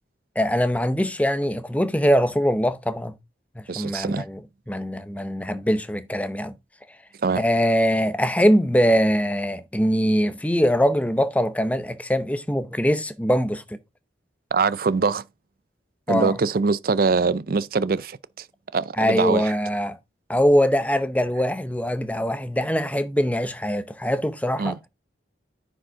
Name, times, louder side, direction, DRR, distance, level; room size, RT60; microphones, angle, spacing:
voice 1, 0.4-3.1 3.6-4.4 4.7-6.5 7.4-13.6 16.1-16.4 19.0-20.0 20.3-24.8, equal, 5° left, 0.6 m, -22 dB
voice 2, 3.7-4.2 7.2-7.4 14.5-15.2 16.1-18.5 18.7-19.5 24.6-24.8, right 4 dB, 50° right, 0.4 m, -23 dB
9.9 x 5.2 x 3.6 m
head